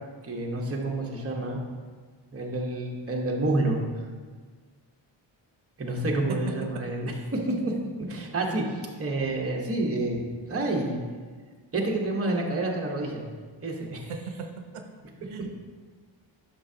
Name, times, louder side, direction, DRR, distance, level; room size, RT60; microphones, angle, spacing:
voice 1, 0.2-1.6 2.3-3.8 5.8-7.7 8.1-10.2 10.5-11.0 11.7-13.2 13.6-14.1, right 2 dB, 30° right, -1 dB, 1.1 m, -28 dB
voice 2, 6.3-6.8 14.1-14.9 15.3-15.6, right 5 dB, 80° right, 5 dB, 0.8 m, -37 dB
11.0 x 6.1 x 2.8 m, 1.5 s
wide cardioid pair, 160°, 50 cm